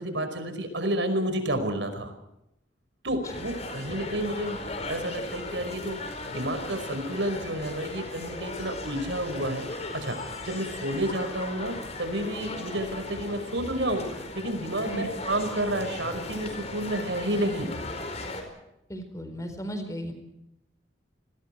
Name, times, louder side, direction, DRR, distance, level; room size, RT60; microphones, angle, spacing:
voice 1, 0.0-2.1 3.0-17.7, right 1 dB, 75° right, 8 dB, 5.2 m, -30 dB
sound 1, 3.2-18.4, left 2 dB, 35° left, 4.9 m, -37 dB
voice 2, 18.9-20.1, equal, 15° left, 7 dB, 4.3 m, -35 dB
30.0 x 21.0 x 4.6 m, 0.85 s
head